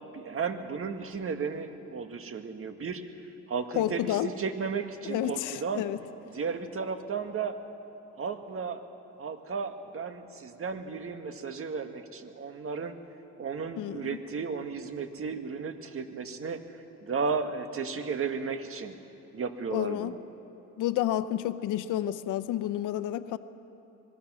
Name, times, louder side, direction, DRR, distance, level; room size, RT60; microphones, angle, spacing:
voice 1, 0.1-3.0 3.5-5.8 6.3-7.6 8.2-8.8 9.2-12.9 13.4-16.6 17.0-19.0 19.3-20.2, right 5 dB, 45° right, 7 dB, 1.8 m, -34 dB
voice 2, 3.8-4.3 5.1-6.0 13.8-14.1 19.7-20.1 20.8-23.4, left 12 dB, 90° left, 12 dB, 0.7 m, -30 dB
26.0 x 20.5 x 6.3 m, 2.9 s
cardioid pair, 90°, 30 cm